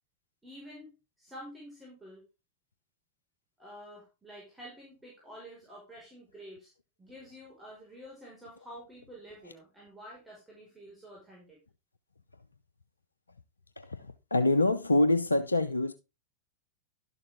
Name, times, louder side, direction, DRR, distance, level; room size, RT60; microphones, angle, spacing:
voice 1, 0.4-0.9 1.2-2.2 3.6-6.7 7.0-11.6, equal, 10° right, 5.1 m, -49 dB
voice 2, 13.8-15.9, left 2 dB, 85° left, 0.6 m, -26 dB
12.0 x 6.8 x 3.6 m
figure-of-eight pair, 90°, 0 cm